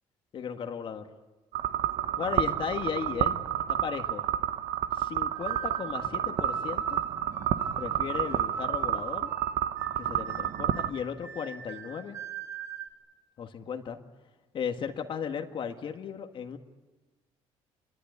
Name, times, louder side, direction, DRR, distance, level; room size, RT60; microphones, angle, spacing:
voice 1, 0.3-1.1 2.2-3.4 3.7-4.2 4.9-7.0 7.8-9.3 10.0-12.2 13.4-14.0 14.5-16.6, left 7 dB, 50° left, 5 dB, 1.7 m, -35 dB
sound 1, 1.5-10.9, right 11 dB, 75° right, 1.2 m, -30 dB
sound 2, 5.3-12.9, right 5 dB, 30° right, 3.9 m, -41 dB
27.5 x 22.0 x 9.5 m, 1.3 s
cardioid pair, 115°, 11 cm